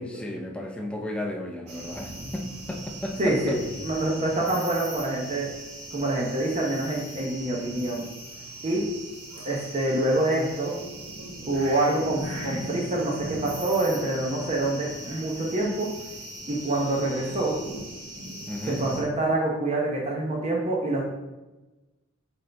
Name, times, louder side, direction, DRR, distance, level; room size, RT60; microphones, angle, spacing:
voice 1, 0.0-3.6 18.5-18.8, left 1 dB, 5° left, 0 dB, 0.7 m, -33 dB
sound 1, 1.7-19.0, right 1 dB, 85° right, 1.9 m, -39 dB
voice 2, 3.2-3.6 3.8-5.5 5.9-8.1 8.6-8.8 9.4-10.7 11.5-15.9 16.5-17.5 18.8-21.0, right 2 dB, 30° right, -2 dB, 0.9 m, -26 dB
8.1 x 4.0 x 3.4 m, 1.1 s
head